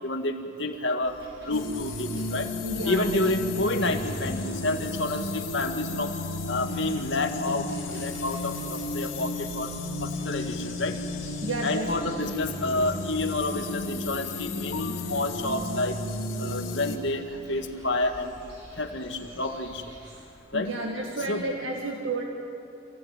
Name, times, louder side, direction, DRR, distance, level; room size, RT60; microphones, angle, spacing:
voice 1, 0.0-1.2 1.4-2.5 2.8-6.1 6.5-9.7 10.0-11.0 11.6-16.0 16.4-17.2 17.5-18.3 18.8-19.8 20.5-20.7 21.3-21.5, left 2 dB, 65° left, 5 dB, 1.8 m, -29 dB
sound 1, 1.0-20.3, equal, 60° right, 6.1 m, -49 dB
sound 2, 1.5-17.0, left 2 dB, 85° left, 2.2 m, -33 dB
voice 2, 2.6-3.2 11.4-11.9 16.0-16.1 20.5-22.2, right 2 dB, 90° right, 0 dB, 2.0 m, -31 dB
27.0 x 16.5 x 9.1 m, 2.9 s
head